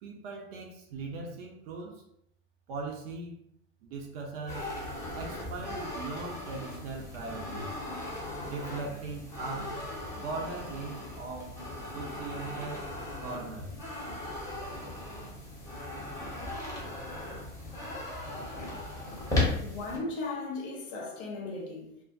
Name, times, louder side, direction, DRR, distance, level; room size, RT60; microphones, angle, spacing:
voice 1, 0.0-2.0 2.7-3.4 3.8-4.7 5.1-7.8 8.4-9.7 10.1-12.9 13.2-13.9, right 3 dB, 45° right, 0.5 m, -39 dB
sound 1, 4.5-20.0, left 2 dB, 10° left, 0.7 m, -37 dB
voice 2, 19.6-22.0, left 3 dB, 50° left, 0.7 m, -37 dB
2.4 x 2.2 x 2.4 m
figure-of-eight pair, 90°, 42 cm